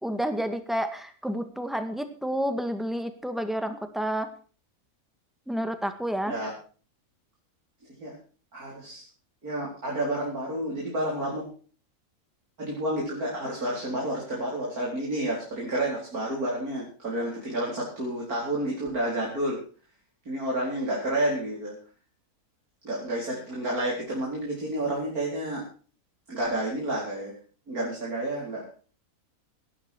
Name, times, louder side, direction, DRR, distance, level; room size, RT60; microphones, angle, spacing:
voice 1, 0.0-4.3 5.5-6.3, equal, ahead, 8 dB, 1.8 m, -30 dB
voice 2, 8.5-9.0 9.4-11.4 12.6-19.6 20.2-21.7 22.8-25.6 26.3-27.3 27.7-28.7, right 1 dB, 80° right, -3 dB, 5.0 m, -30 dB
18.0 x 11.5 x 4.7 m, 0.40 s
omnidirectional pair, 1.5 m